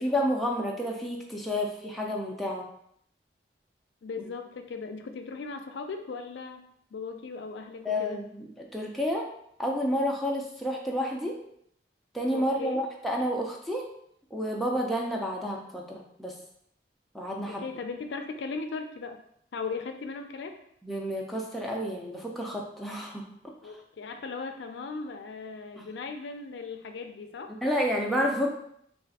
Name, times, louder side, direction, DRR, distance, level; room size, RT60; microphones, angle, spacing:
voice 1, 0.0-2.6 7.8-9.3 9.6-11.4 12.1-13.9 14.3-16.3 17.1-17.6 20.8-23.2 27.5-28.5, equal, ahead, -2 dB, 0.4 m, -30 dB
voice 2, 4.0-6.6 6.9-8.2 12.3-12.8 17.5-19.2 19.5-20.6 23.6-27.6, left 4 dB, 85° left, 6 dB, 0.4 m, -38 dB
3.3 x 2.4 x 4.0 m, 0.70 s
head